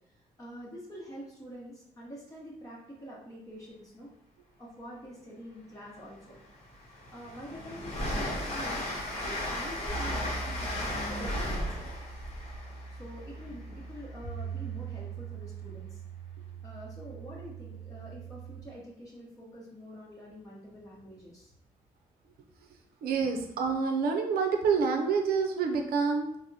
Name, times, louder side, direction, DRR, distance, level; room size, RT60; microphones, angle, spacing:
voice 1, 0.1-4.1 4.6-6.4 6.9-10.9 11.2-11.8 12.9-16.0 16.6-21.5, equal, 20° left, -6 dB, 0.9 m, -46 dB
Train, 5.8-5.9 6.3-14.1, left 1 dB, 40° left, 1.0 m, -35 dB
sound 1, 9.9-18.6, right 5 dB, 20° right, 0.9 m, -41 dB
voice 2, 23.0-26.4, right 5 dB, 70° right, 4 dB, 0.5 m, -27 dB
3.3 x 2.1 x 2.7 m, 0.76 s
supercardioid pair, 60°, 16 cm